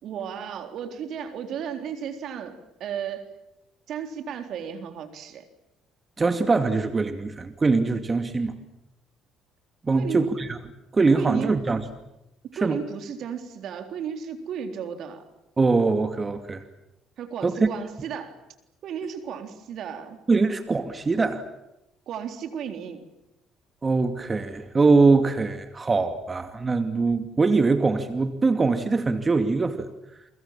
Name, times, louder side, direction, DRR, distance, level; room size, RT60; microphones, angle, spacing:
voice 1, 0.0-3.3 3.9-5.5 9.9-10.3 11.1-11.6 12.4-15.3 17.2-18.4 18.8-20.2 22.1-23.1, right 7 dB, 65° right, 7 dB, 3.8 m, -34 dB
voice 2, 6.2-8.6 9.8-10.6 10.9-11.8 12.6-12.8 15.6-16.6 17.4-17.6 20.3-21.4 23.8-29.9, right 3 dB, 30° right, 8 dB, 2.5 m, -22 dB
29.5 x 23.5 x 7.5 m, 0.89 s
hypercardioid pair, 60°, 0 cm